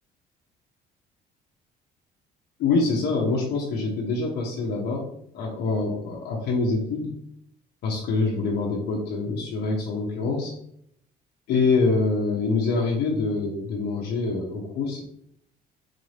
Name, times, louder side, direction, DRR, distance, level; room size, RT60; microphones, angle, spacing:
voice 1, 2.6-5.1 5.3-7.2 7.8-10.5 11.5-15.0, left 3 dB, 75° left, -3 dB, 0.8 m, -25 dB
4.0 x 2.6 x 3.2 m, 0.71 s
cardioid pair, 110°, 17 cm